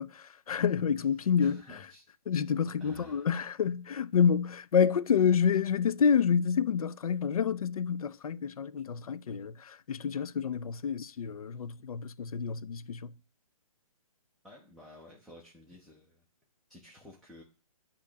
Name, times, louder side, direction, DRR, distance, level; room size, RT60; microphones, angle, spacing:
voice 1, 0.0-1.6 2.3-13.1, left 7 dB, 75° left, 0.4 m, -28 dB
voice 2, 1.4-2.0 2.8-3.3 14.4-16.2 16.7-17.4, left 1 dB, ahead, 0.4 m, -52 dB
8.2 x 2.9 x 6.1 m
hypercardioid pair, 150°, 19 cm